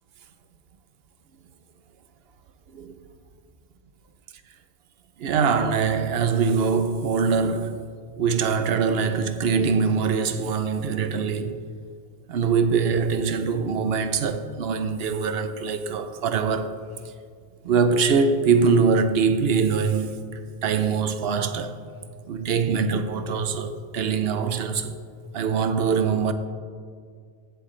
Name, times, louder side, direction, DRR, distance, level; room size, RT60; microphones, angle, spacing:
voice 1, 5.2-7.9 8.2-11.6 12.3-16.8 17.6-20.2 20.6-21.8 22.3-25.0 25.3-26.3, right 5 dB, 65° right, 0.8 m, -23 dB
16.0 x 7.7 x 3.2 m
omnidirectional pair, 1.1 m